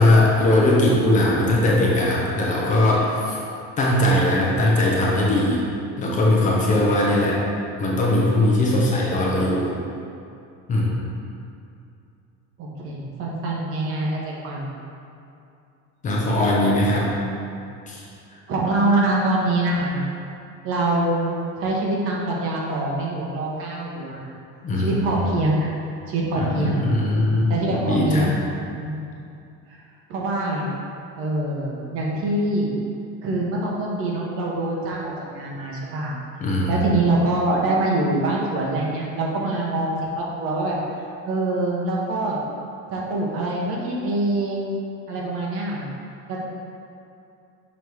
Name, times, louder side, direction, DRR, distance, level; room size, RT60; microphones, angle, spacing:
voice 1, 0.0-3.4 3.8-5.6 6.0-7.4 7.8-9.7 10.7-11.0 16.0-17.2 17.9-18.1 24.6-25.2 26.4-28.3 36.4-36.8, left 1 dB, 25° left, -4 dB, 0.7 m, -20 dB
voice 2, 12.6-14.6 18.5-20.0 20.6-24.3 24.7-25.7 26.1-26.9 27.5-28.4 28.8-29.0 30.1-30.7 31.2-32.7 33.2-36.2 36.7-40.8 41.3-42.4 42.9-44.7 45.1-45.8 46.3-46.4, right 2 dB, 50° right, -3 dB, 1.1 m, -24 dB
6.3 x 3.6 x 4.6 m, 2.6 s
cardioid pair, 180°, 29 cm